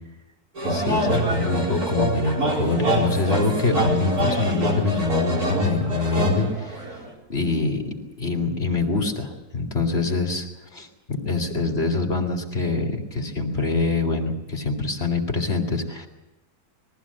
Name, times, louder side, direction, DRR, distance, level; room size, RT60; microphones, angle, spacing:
sound 1, 0.6-7.1, right 1 dB, 85° right, 4.9 m, -24 dB
voice 1, 0.7-6.8 7.3-10.5 10.7-16.1, left 3 dB, 45° left, 2 dB, 2.7 m, -25 dB
21.5 x 15.0 x 8.4 m, 1.0 s
omnidirectional pair, 1.6 m